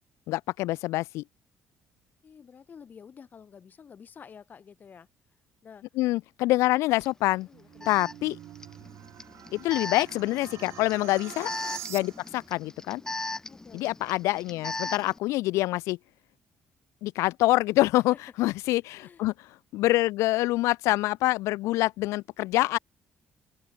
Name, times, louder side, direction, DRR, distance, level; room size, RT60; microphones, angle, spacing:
voice 1, 0.3-1.2 6.0-7.5 7.9-8.4 9.5-11.5 11.9-13.0 13.7-16.0 17.0-19.3 19.7-22.8, left 18 dB, 90° left, 0.4 m, -26 dB
voice 2, 2.2-5.1 5.6-5.8 7.4-8.1 13.5-13.8 18.1-18.2 19.0-19.3, left 6 dB, 40° left, 3.3 m, -50 dB
Alarm, 7.0-7.1 7.8-15.2, left 2 dB, 10° left, 0.7 m, -38 dB
sound 1, 7.3-12.5, right 13 dB, 70° right, 1.7 m, -45 dB
open air
cardioid pair, 125°, 5 cm